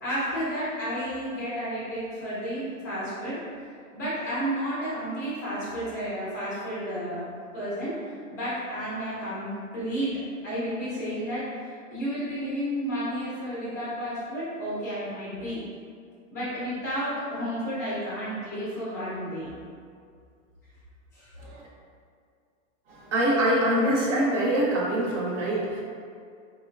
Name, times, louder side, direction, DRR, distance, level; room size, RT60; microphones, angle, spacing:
voice 1, 0.0-3.4 3.9-7.9 8.3-15.6 16.3-19.5 21.1-21.3, equal, 15° left, -10 dB, 0.4 m, -32 dB
voice 2, 22.9-25.8, right 1 dB, 60° right, -5 dB, 0.9 m, -24 dB
3.4 x 2.1 x 2.3 m, 2.2 s
supercardioid pair, 170°, 40 cm